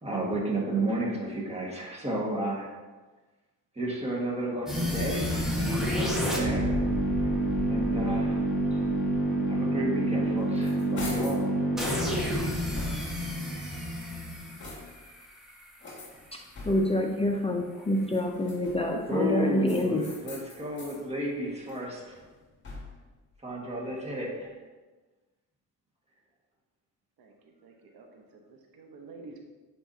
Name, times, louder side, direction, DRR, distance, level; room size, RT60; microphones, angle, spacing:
voice 1, 0.0-2.8 3.8-6.9 7.7-8.8 9.5-11.7 19.1-22.0 23.4-24.6, right 1 dB, 15° right, -3 dB, 1.7 m, -32 dB
sound 1, 4.7-15.6, right 1 dB, ahead, 1.4 m, -28 dB
sound 2, 10.1-11.5 12.0-13.3 13.9-15.1 15.8-17.1 18.0-19.0 19.6-21.0 21.4-23.1, left 2 dB, 30° left, 2.1 m, -44 dB
voice 2, 16.6-20.1, left 1 dB, 15° left, 1 dB, 0.5 m, -27 dB
voice 3, 27.6-29.4, right 3 dB, 80° right, 2 dB, 1.1 m, -49 dB
9.5 x 4.6 x 2.8 m, 1.2 s
cardioid pair, 120°, 36 cm